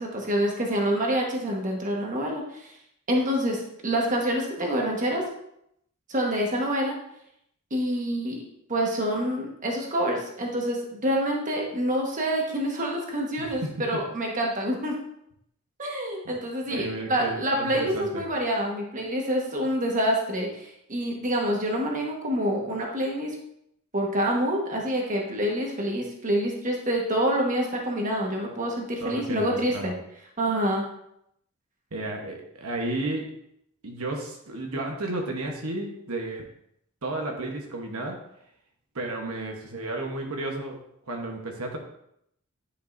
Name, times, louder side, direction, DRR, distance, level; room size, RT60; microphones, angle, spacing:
voice 1, 0.0-2.7 3.1-5.2 6.1-6.9 7.7-8.4 8.7-14.9 15.8-23.3 23.9-29.9 30.4-30.8, equal, 35° right, -1 dB, 1.4 m, -27 dB
voice 2, 16.7-18.3 29.0-29.9 31.9-33.3 33.8-36.5 37.0-38.2 38.9-40.8 41.1-41.8, right 2 dB, 80° right, 1 dB, 1.1 m, -32 dB
9.9 x 5.3 x 2.6 m, 0.75 s
head